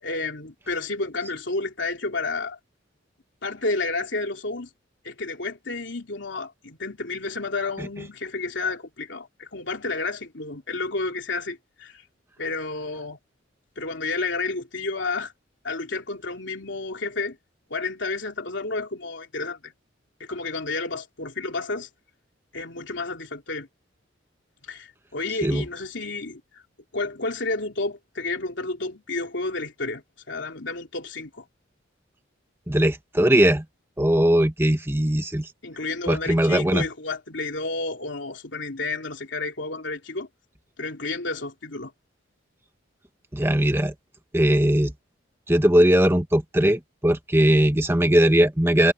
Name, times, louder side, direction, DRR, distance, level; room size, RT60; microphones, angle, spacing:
voice 1, 0.0-2.6 3.4-4.7 5.0-12.0 12.4-13.2 13.8-15.3 15.6-17.4 17.7-19.7 20.2-21.9 22.5-23.7 24.6-26.6 26.9-31.4 35.6-40.3 40.8-41.9, left 3 dB, 75° left, 3.0 m, -31 dB
voice 2, 32.7-33.6 34.0-35.5 36.1-36.8 43.3-43.9 44.3-44.9 45.5-48.9, right 1 dB, 15° right, 1.4 m, -19 dB
head